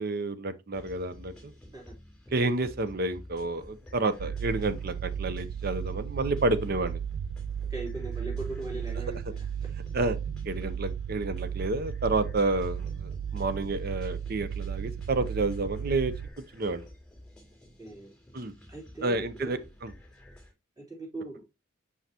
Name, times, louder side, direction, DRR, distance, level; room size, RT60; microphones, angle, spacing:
voice 1, 0.0-1.5 2.3-7.0 9.9-10.2 10.5-16.1 16.5-16.8 18.3-18.5 19.0-19.9, right 2 dB, 50° right, 0.7 m, -30 dB
sound 1, 0.7-20.5, left 1 dB, 5° left, 3.2 m, -50 dB
sound 2, 4.2-16.3, right 8 dB, 75° right, 0.3 m, -35 dB
voice 2, 7.7-9.5 17.8-18.1 18.7-19.6 20.8-21.4, right 2 dB, 20° right, 3.1 m, -39 dB
6.3 x 5.7 x 2.9 m
head